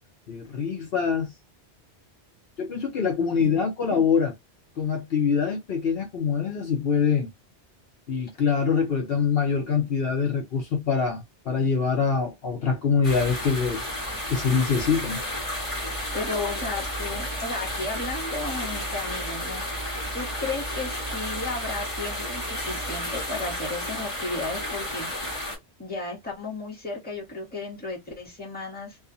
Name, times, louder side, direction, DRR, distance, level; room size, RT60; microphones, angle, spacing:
voice 1, 0.3-1.3 2.6-4.3 4.8-7.3 8.1-13.8 14.3-15.2, left 6 dB, 65° left, 0.9 m, -24 dB
voice 2, 3.4-4.0 16.1-19.6 20.1-25.1 25.8-29.0, left 3 dB, 10° left, 1.2 m, -34 dB
sound 1, 13.0-25.6, equal, 30° left, 1.3 m, -32 dB
2.5 x 2.3 x 2.5 m
omnidirectional pair, 1.1 m